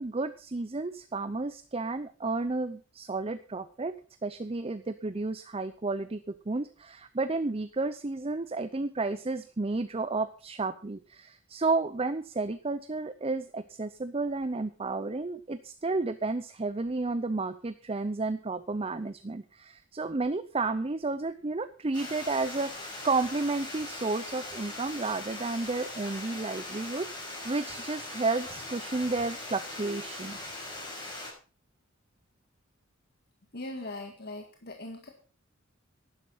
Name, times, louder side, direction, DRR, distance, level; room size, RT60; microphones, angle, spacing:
voice 1, 0.0-3.9 4.2-27.1 27.4-30.4, right 3 dB, 30° right, 12 dB, 0.6 m, -32 dB
Water, 21.9-31.3, left 2 dB, 20° left, 6.3 m, -40 dB
voice 2, 33.5-35.1, left 2 dB, 50° left, 3 dB, 1.8 m, -40 dB
11.5 x 11.0 x 5.6 m, 0.38 s
head